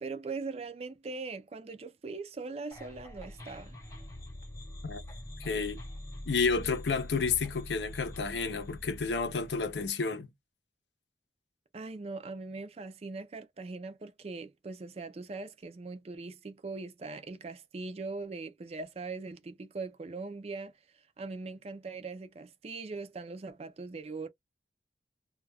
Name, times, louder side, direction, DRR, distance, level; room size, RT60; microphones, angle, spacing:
voice 1, 0.0-3.8 11.7-24.3, right 3 dB, 35° right, 0.4 m, -41 dB
sound 1, 2.7-9.9, left 1 dB, 20° left, 0.8 m, -45 dB
voice 2, 5.4-5.8 6.3-10.3, left 4 dB, 75° left, 0.6 m, -30 dB
2.3 x 2.1 x 3.3 m
head